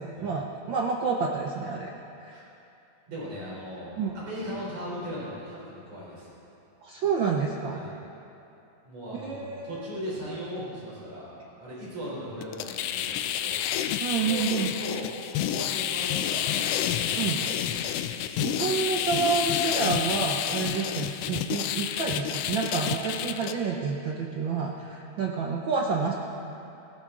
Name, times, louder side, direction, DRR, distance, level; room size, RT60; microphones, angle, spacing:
voice 1, 0.0-1.9 2.2-2.4 3.9-4.1 6.8-7.8 9.1-9.9 14.0-14.7 17.2-17.4 18.4-26.1, right 5 dB, 85° right, 0 dB, 1.0 m, -29 dB
voice 2, 3.1-6.3 7.7-7.9 8.8-11.3 11.6-13.6 14.0-14.5 14.8-17.7, equal, 60° right, -6 dB, 5.1 m, -38 dB
sound 1, 12.4-23.5, left 10 dB, 85° left, 1.3 m, -29 dB
18.5 x 16.0 x 3.8 m, 2.8 s
omnidirectional pair, 3.3 m